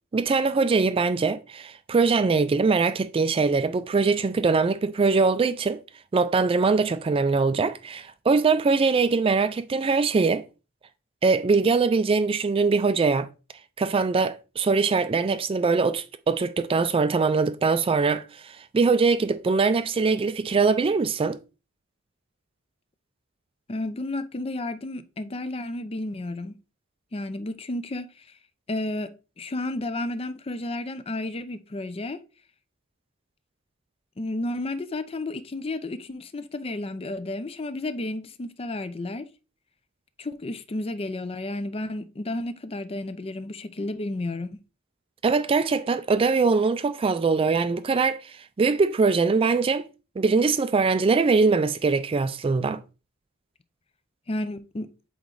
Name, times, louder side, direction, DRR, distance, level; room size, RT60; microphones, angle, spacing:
voice 1, 0.1-5.8 6.1-10.4 11.2-13.3 13.8-21.4 45.2-49.8 50.2-52.8, right 4 dB, 25° right, 0.3 m, -22 dB
voice 2, 23.7-26.5 27.1-28.3 28.7-32.2 34.2-39.3 40.2-44.6 54.3-54.9, left 2 dB, 30° left, 0.5 m, -32 dB
8.0 x 3.1 x 3.8 m
head